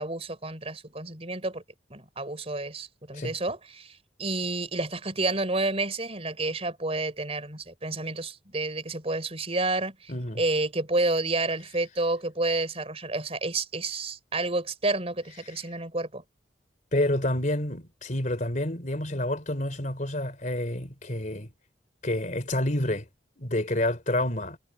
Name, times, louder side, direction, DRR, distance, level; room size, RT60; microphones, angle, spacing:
voice 1, 0.0-1.6 1.9-16.2, right 2 dB, 35° right, 4.8 m, -30 dB
voice 2, 10.1-10.4 16.9-21.5 22.0-23.1 23.4-24.6, left 1 dB, 45° left, 3.7 m, -28 dB
head